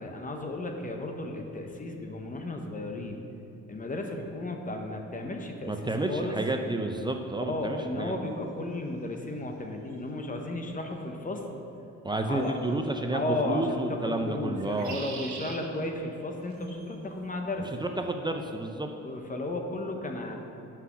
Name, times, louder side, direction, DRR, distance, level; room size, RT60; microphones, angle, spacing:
voice 1, 0.0-3.2 3.7-5.7 6.1-6.4 7.5-11.4 12.2-12.6 13.1-17.7 19.0-20.4, left 2 dB, 25° left, 3 dB, 0.9 m, -34 dB
voice 2, 5.6-8.3 12.0-15.0 17.8-18.9, right 2 dB, 15° right, 4 dB, 0.5 m, -30 dB
sound 1, 9.9-10.0 12.4-12.8 14.6-15.6 16.5-17.0, right 5 dB, 70° right, 1.1 m, -42 dB
6.1 x 5.7 x 5.7 m, 2.9 s
cardioid pair, 90°, 30 cm